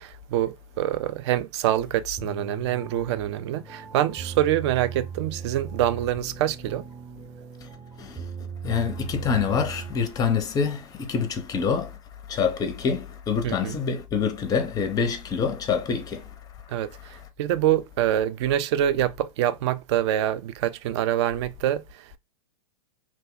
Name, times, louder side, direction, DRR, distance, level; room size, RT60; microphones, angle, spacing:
voice 1, 0.0-6.9 13.4-13.8 16.7-22.2, right 12 dB, 50° right, 0.4 m, -25 dB
sound 1, 2.2-10.3, right 5 dB, 15° right, 0.8 m, -39 dB
voice 2, 8.0-8.3 8.6-12.0 12.3-16.4, left 6 dB, 20° left, 0.6 m, -26 dB
2.9 x 2.1 x 3.6 m
hypercardioid pair, 105°, 19 cm